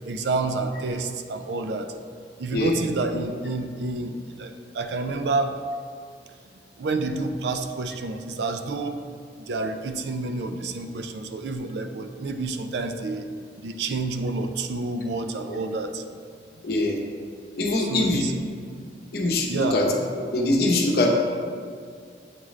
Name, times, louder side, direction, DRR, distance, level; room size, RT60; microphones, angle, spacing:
voice 1, 0.0-1.9 2.4-5.5 6.8-9.0 9.5-13.2 13.6-16.0 17.8-18.3 19.5-19.8, right 3 dB, 70° right, 7 dB, 0.4 m, -29 dB
voice 2, 16.6-17.0 17.6-18.3 19.1-19.9 20.3-21.1, left 2 dB, 55° left, 0 dB, 0.8 m, -23 dB
8.0 x 3.7 x 3.1 m, 2.1 s
head